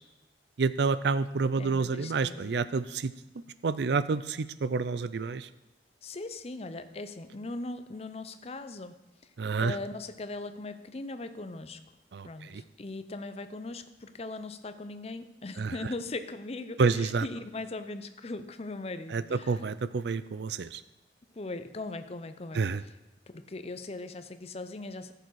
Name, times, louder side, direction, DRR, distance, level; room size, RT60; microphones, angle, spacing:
voice 1, 0.6-3.1 3.6-5.5 9.4-9.8 12.1-12.6 15.6-15.7 16.8-17.3 19.1-20.8 22.5-22.8, right 4 dB, 65° right, 15 dB, 0.4 m, -29 dB
voice 2, 1.6-2.5 6.0-9.0 9.2-9.3 9.6-11.8 12.2-19.6 21.3-22.9 23.3-25.1, left 2 dB, 35° left, 10 dB, 0.6 m, -39 dB
13.5 x 6.9 x 4.7 m, 1.0 s
head